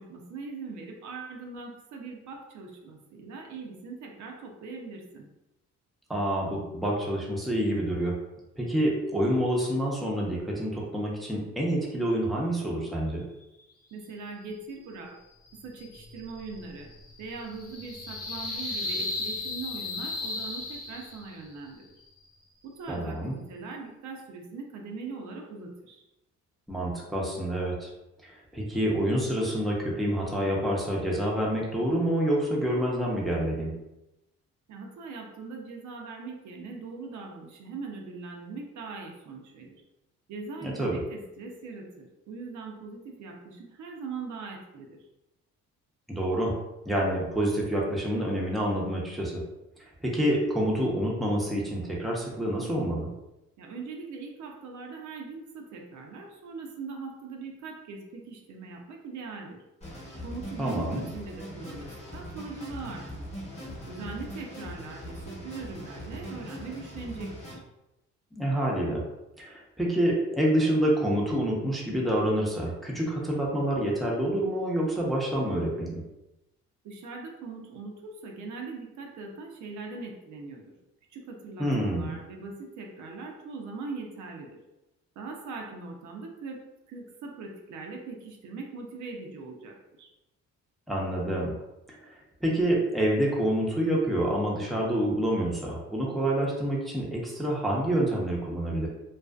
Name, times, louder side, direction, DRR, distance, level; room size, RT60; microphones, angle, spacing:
voice 1, 0.0-5.3 13.9-15.2 15.6-16.9 17.2-21.9 22.6-26.0 34.7-39.8 40.3-45.0 53.6-59.6 60.2-63.3 63.9-67.6 76.8-80.7 81.1-84.6 85.2-90.1, right 4 dB, 70° right, 1 dB, 0.6 m, -41 dB
voice 2, 6.1-8.2 8.6-13.3 22.9-23.3 26.7-27.9 28.3-33.7 40.6-41.0 46.1-46.5 46.8-49.4 50.0-53.1 60.6-61.0 68.4-69.0 69.4-76.0 81.6-82.1 90.9-91.5 92.4-98.9, right 1 dB, ahead, -4 dB, 0.6 m, -27 dB
sound 1, 15.5-21.4, left 2 dB, 50° left, 0.8 m, -36 dB
sound 2, 59.8-67.6, equal, 20° left, 0.9 m, -41 dB
2.5 x 2.3 x 2.3 m, 0.93 s
cardioid pair, 90°, 30 cm